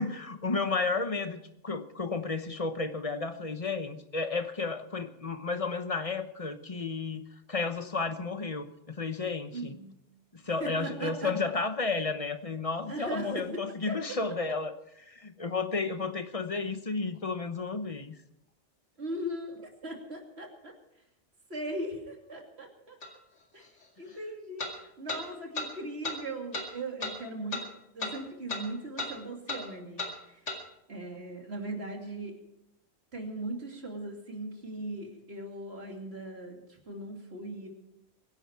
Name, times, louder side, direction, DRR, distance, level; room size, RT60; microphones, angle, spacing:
voice 1, 0.0-7.2 7.5-9.8 10.3-14.7 15.0-18.2, left 4 dB, 30° left, 9 dB, 1.0 m, -32 dB
voice 2, 9.5-10.0 10.4-11.5 12.9-13.6 13.9-14.0 19.0-20.7 21.5-23.0 23.5-23.7 24.0-27.7 27.9-30.5 30.9-32.4 33.1-37.7, right 1 dB, 60° right, 1 dB, 3.1 m, -39 dB
sound 1, 23.0-23.1 24.6-24.7 25.1-25.2 25.5-25.7 26.0-26.2 26.5-26.7 27.0-27.1 27.5-27.7 28.0-28.2 28.5-28.6 29.0-29.1 29.5-29.6 30.0-30.1 30.5-30.6, left 2 dB, 85° left, 2.8 m, -34 dB
23.0 x 11.0 x 4.7 m, 0.82 s
omnidirectional pair, 1.2 m